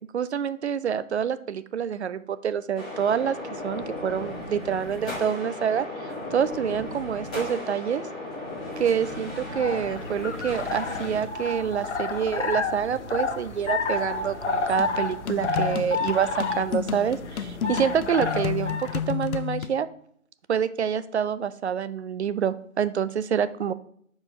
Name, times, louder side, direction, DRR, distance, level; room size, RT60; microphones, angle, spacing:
voice 1, 0.1-3.4 3.6-5.9 6.3-8.0 8.8-19.9 20.5-23.7, right 8 dB, 55° right, 14 dB, 0.5 m, -27 dB
sound 1, 2.8-11.2, left 2 dB, 5° left, 0.5 m, -36 dB
sound 2, 9.3-19.0, left 3 dB, 55° left, 1.1 m, -30 dB
sound 3, 14.8-19.8, left 8 dB, 90° left, 0.6 m, -31 dB
5.9 x 4.8 x 4.9 m, 0.64 s
figure-of-eight pair, 145°, 42 cm